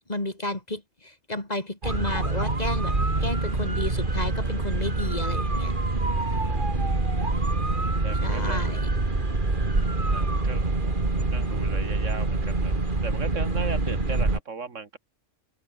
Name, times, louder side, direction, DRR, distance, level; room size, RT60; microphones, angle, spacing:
voice 1, 0.1-2.9 3.2-5.7 8.2-8.9, left 1 dB, 30° left, 3.6 m, -32 dB
sound 1, 1.8-14.4, right 2 dB, 40° right, 2.9 m, -25 dB
voice 2, 6.0-6.9 8.0-8.7 10.0-12.7 13.0-15.0, right 4 dB, 75° right, 2.3 m, -38 dB
open air
omnidirectional pair, 1.3 m